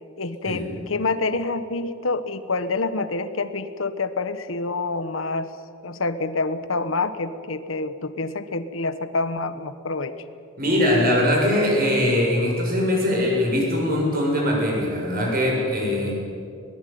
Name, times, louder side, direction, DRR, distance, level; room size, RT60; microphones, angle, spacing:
voice 1, 0.2-5.5 5.8-10.2, left 3 dB, 90° left, 12 dB, 1.2 m, -27 dB
voice 2, 10.6-16.1, left 1 dB, 45° right, -1 dB, 7.4 m, -21 dB
22.0 x 19.0 x 9.4 m, 2.5 s
head